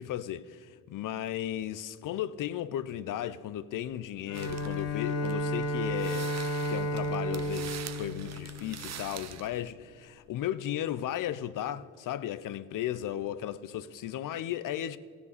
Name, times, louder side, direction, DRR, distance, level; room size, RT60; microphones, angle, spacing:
voice 1, 0.0-15.0, left 11 dB, 60° left, 0.6 m, -35 dB
Bowed string instrument, 4.3-9.4, left 1 dB, 40° left, 1.6 m, -33 dB
sound 1, 4.3-9.7, right 8 dB, 45° right, 0.8 m, -45 dB
14.5 x 7.1 x 6.6 m
supercardioid pair, 60°, 37 cm